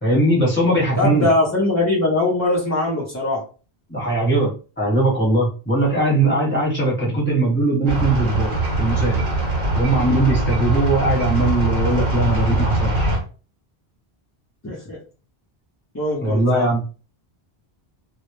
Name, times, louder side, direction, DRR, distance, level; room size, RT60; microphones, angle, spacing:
voice 1, 0.0-1.3 3.9-4.5 4.8-9.2 9.7-13.1 16.2-16.8, right 2 dB, 10° left, -5 dB, 0.9 m, -20 dB
voice 2, 1.0-3.4 14.6-15.0 15.9-16.7, left 2 dB, 30° left, -5 dB, 0.3 m, -21 dB
sound 1, 7.9-13.2, right 2 dB, 60° right, 0.8 m, -22 dB
2.0 x 2.0 x 3.0 m, 0.36 s
omnidirectional pair, 1.1 m